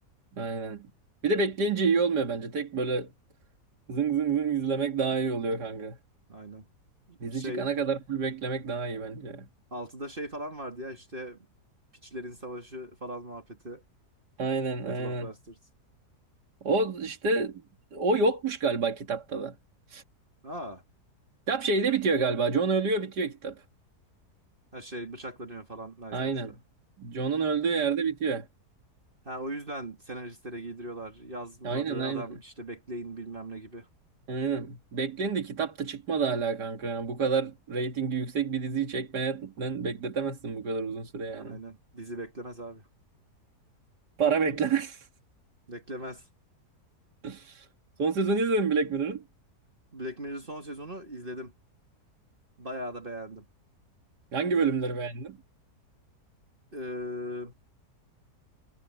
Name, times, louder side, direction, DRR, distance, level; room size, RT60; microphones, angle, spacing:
voice 1, 0.4-0.9 1.2-3.1 3.9-6.0 7.2-9.5 14.4-15.3 16.6-17.6 17.9-19.6 19.9-20.0 21.5-23.6 26.1-26.5 27.0-28.5 31.6-32.2 34.3-41.6 44.2-45.1 47.2-47.7 48.0-49.2 54.3-55.4, right 4 dB, 80° right, 2.7 m, -28 dB
voice 2, 6.3-6.6 7.1-7.7 9.7-11.4 12.0-13.8 14.8-15.6 20.4-20.8 24.7-26.4 27.4-27.6 29.2-33.9 41.3-42.8 45.7-46.3 49.9-51.5 52.6-53.4 54.6-54.7 56.7-57.5, equal, 30° right, 2.5 m, -39 dB
omnidirectional pair, 1.8 m